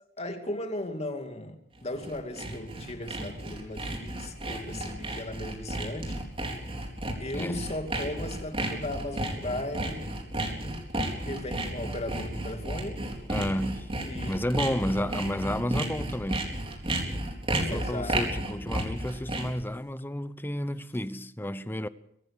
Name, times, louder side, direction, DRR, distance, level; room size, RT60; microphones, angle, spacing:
voice 1, 0.2-6.3 7.2-10.0 11.0-13.0 14.0-15.1 17.7-18.2 18.6-18.7, left 1 dB, 35° left, 2.6 m, -37 dB
Sawing, 1.8-19.6, right 1 dB, 30° right, 4.1 m, -33 dB
voice 2, 13.3-13.9 14.3-16.6 17.6-21.9, left 1 dB, 10° left, 0.8 m, -31 dB
24.0 x 18.5 x 6.7 m
head